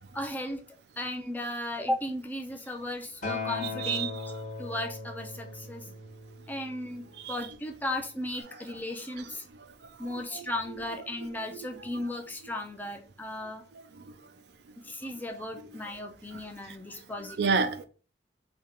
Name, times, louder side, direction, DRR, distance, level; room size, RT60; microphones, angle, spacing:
voice 1, 0.1-0.6 1.0-4.2 4.6-5.9 6.5-7.0 7.3-9.4 10.0-13.6 14.8-17.5, left 1 dB, 10° left, 4 dB, 0.5 m, -35 dB
Acoustic guitar, 3.2-7.5 8.4-8.5, left 3 dB, 45° left, 1.2 m, -39 dB
voice 2, 10.1-10.5 17.4-17.8, right 5 dB, 70° right, 9 dB, 0.5 m, -28 dB
3.5 x 2.3 x 4.4 m, 0.37 s
head